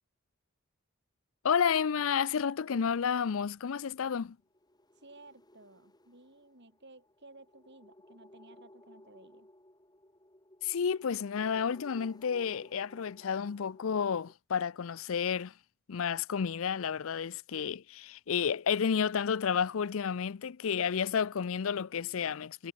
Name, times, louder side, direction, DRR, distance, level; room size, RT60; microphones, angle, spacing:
voice 1, 1.4-4.4 10.6-15.5 15.9-22.7, left 7 dB, 65° left, 0.5 m, -31 dB
sound 1, 4.4-14.3, left 1 dB, 20° left, 3.7 m, -58 dB
voice 2, 5.0-9.5, right 2 dB, 50° right, 6.2 m, -56 dB
head